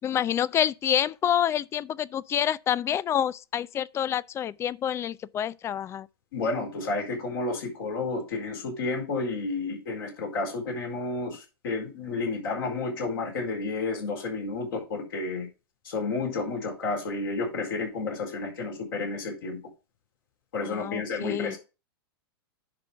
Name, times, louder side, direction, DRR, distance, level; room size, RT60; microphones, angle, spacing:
voice 1, 0.0-6.1 20.6-21.6, left 10 dB, 20° left, 0.4 m, -27 dB
voice 2, 6.3-15.5 15.8-19.6 20.5-21.6, left 3 dB, 65° left, 4.3 m, -31 dB
10.5 x 3.8 x 5.7 m
figure-of-eight pair, 100°, 13 cm